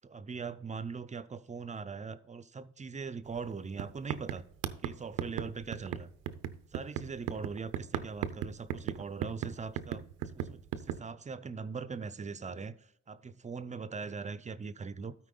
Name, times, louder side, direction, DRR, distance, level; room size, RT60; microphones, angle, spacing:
voice 1, 0.0-4.4 4.8-6.1 6.7-12.7 13.1-15.1, right 5 dB, 25° right, 0.5 m, -41 dB
sound 1, 3.3-3.5 3.8-11.0, right 10 dB, 90° right, 0.6 m, -37 dB
13.0 x 4.6 x 3.8 m
cardioid pair, 90°, 30 cm